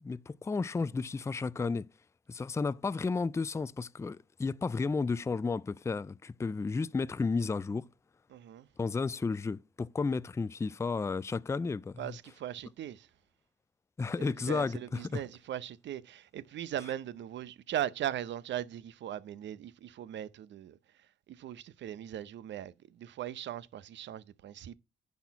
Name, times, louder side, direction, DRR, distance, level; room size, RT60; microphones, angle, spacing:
voice 1, 0.0-1.9 2.3-7.9 8.8-12.1 14.0-15.2, left 4 dB, 15° left, 0.4 m, -33 dB
voice 2, 8.3-8.7 12.0-13.1 14.2-20.8 21.3-24.7, right 11 dB, 65° right, 0.7 m, -39 dB
10.5 x 4.3 x 5.7 m
cardioid pair, 90°, 20 cm